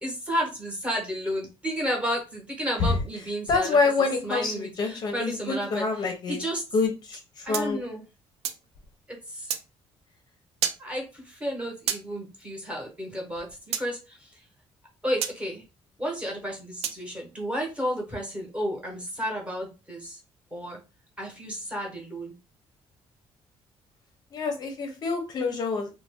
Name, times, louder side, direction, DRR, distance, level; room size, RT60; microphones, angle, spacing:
voice 1, 0.0-3.8 4.2-6.6 7.4-8.0 9.1-9.5 10.8-14.3 15.0-15.6 16.0-20.2 20.5-20.8 21.2-22.3, equal, 10° right, -1 dB, 0.9 m, -32 dB
voice 2, 3.5-6.4 6.7-6.9 7.4-7.8 24.3-25.9, left 4 dB, 40° left, 4 dB, 0.5 m, -26 dB
sound 1, 7.5-8.7 9.5-9.6 10.6-10.8 11.9-12.0 13.7-13.9 15.2-15.4 16.8-17.0, right 9 dB, 85° right, 0.4 m, -30 dB
2.5 x 2.1 x 3.4 m, 0.29 s
cardioid pair, 165°, 11 cm